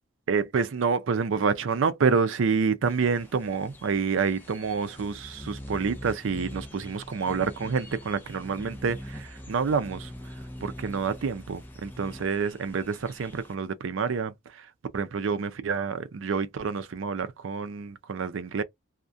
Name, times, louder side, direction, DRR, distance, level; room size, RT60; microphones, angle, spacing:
voice 1, 0.3-10.1 10.6-14.7 14.9-18.6, right 5 dB, 75° right, 0.4 m, -28 dB
sound 1, 2.8-13.5, equal, 10° left, 0.4 m, -43 dB
2.3 x 2.1 x 2.5 m
head